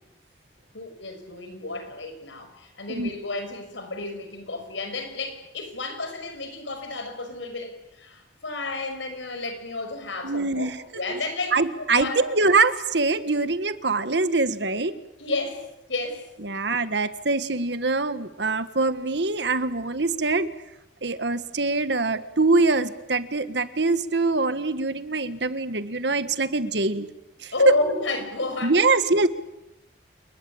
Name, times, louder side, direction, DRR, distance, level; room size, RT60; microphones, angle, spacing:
voice 1, 0.7-12.3 15.2-15.6 15.9-16.2 27.5-29.0, left 2 dB, 90° left, 7 dB, 6.1 m, -31 dB
voice 2, 10.2-10.8 11.1-11.2 11.5-14.9 16.4-20.5 21.0-27.1 27.4-27.7 28.6-29.3, right 3 dB, 70° right, 12 dB, 1.6 m, -23 dB
29.0 x 20.0 x 8.7 m, 0.90 s
head